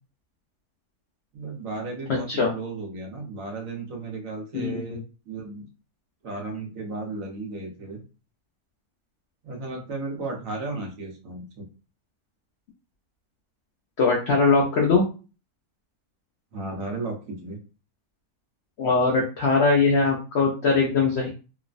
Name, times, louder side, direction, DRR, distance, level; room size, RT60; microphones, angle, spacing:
voice 1, 1.3-5.0 5.2-5.7 6.2-8.0 9.4-11.6 16.5-17.6, right 3 dB, 65° right, 1 dB, 1.1 m, -34 dB
voice 2, 4.5-5.0 14.0-15.0 18.8-21.3, left 4 dB, 65° left, 0 dB, 0.6 m, -21 dB
3.0 x 2.0 x 2.4 m, 0.35 s
omnidirectional pair, 1.6 m